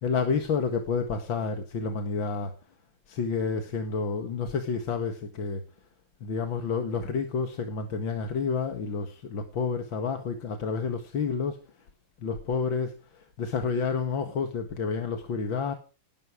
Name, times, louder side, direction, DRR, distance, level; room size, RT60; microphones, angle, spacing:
voice 1, 0.0-2.5 3.1-5.6 6.2-11.6 12.2-15.7, left 5 dB, 85° left, 6 dB, 2.5 m, -29 dB
18.5 x 12.5 x 4.9 m, 0.35 s
omnidirectional pair, 2.1 m